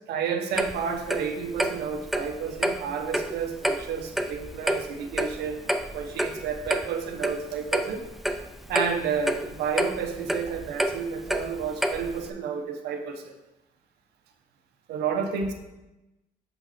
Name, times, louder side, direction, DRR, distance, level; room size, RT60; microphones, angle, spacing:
voice 1, 0.1-5.6 5.9-8.0 8.7-13.3 14.9-15.5, right 6 dB, 75° right, 5 dB, 1.0 m, -31 dB
Clock, 0.6-12.3, equal, ahead, 0.4 m, -30 dB
6.7 x 5.7 x 4.3 m, 0.99 s
cardioid pair, 110°, 17 cm